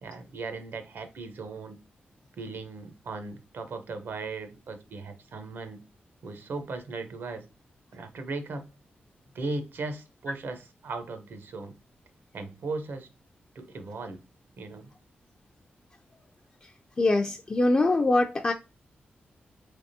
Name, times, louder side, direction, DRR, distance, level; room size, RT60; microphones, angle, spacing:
voice 1, 0.0-1.8 2.4-5.8 6.2-7.5 7.9-8.7 9.3-11.7 12.3-13.1 13.5-14.2 14.6-14.9, right 3 dB, 75° right, 0.8 m, -37 dB
voice 2, 17.0-18.5, left 2 dB, 30° left, 0.3 m, -23 dB
3.5 x 3.3 x 2.7 m
wide cardioid pair, 100°, 4 cm